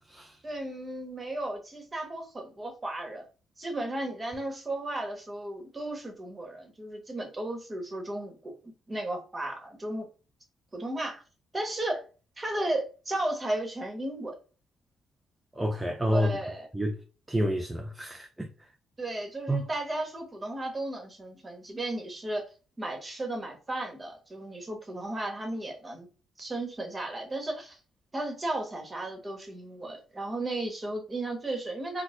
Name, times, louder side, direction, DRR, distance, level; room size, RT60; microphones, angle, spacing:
voice 1, 0.4-3.3 3.6-10.1 10.7-11.2 11.5-12.0 12.4-14.4 16.1-16.7 19.0-22.4 22.8-26.1 26.4-27.8 28.1-32.0, right 1 dB, 25° right, 1.1 m, -34 dB
voice 2, 15.5-16.3 16.7-16.9 17.3-18.5 19.5-19.6, equal, 10° right, 0.4 m, -28 dB
4.1 x 2.2 x 2.4 m
cardioid pair, 90°, 0 cm